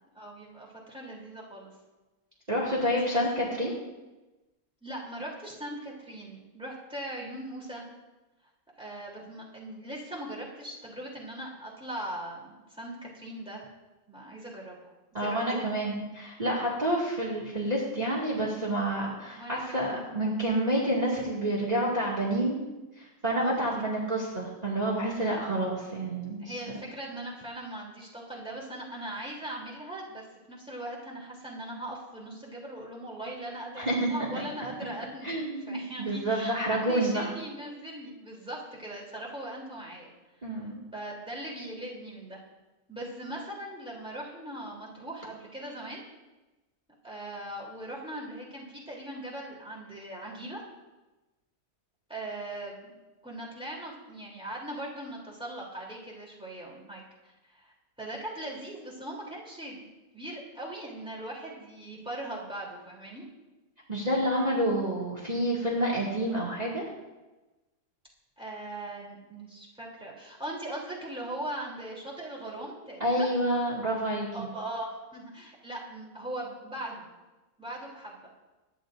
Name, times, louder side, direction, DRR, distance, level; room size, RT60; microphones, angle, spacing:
voice 1, 0.1-1.7 2.8-3.2 4.8-7.8 8.8-13.7 14.1-14.9 15.2-15.6 19.3-20.0 23.4-24.1 25.2-25.4 26.4-30.2 30.5-40.1 40.4-40.5 40.9-42.4 42.9-46.0 47.0-50.6 52.1-52.9 53.2-63.2 68.4-73.4 74.3-77.0 77.6-78.3, right 1 dB, 5° right, -4 dB, 3.1 m, -40 dB
voice 2, 2.5-3.8 15.1-22.6 23.0-26.8 33.8-34.4 35.2-37.2 40.4-40.8 63.9-66.8 73.0-74.5, right 1 dB, 25° right, -4 dB, 2.2 m, -29 dB
23.5 x 10.5 x 2.6 m, 1.1 s
omnidirectional pair, 1.5 m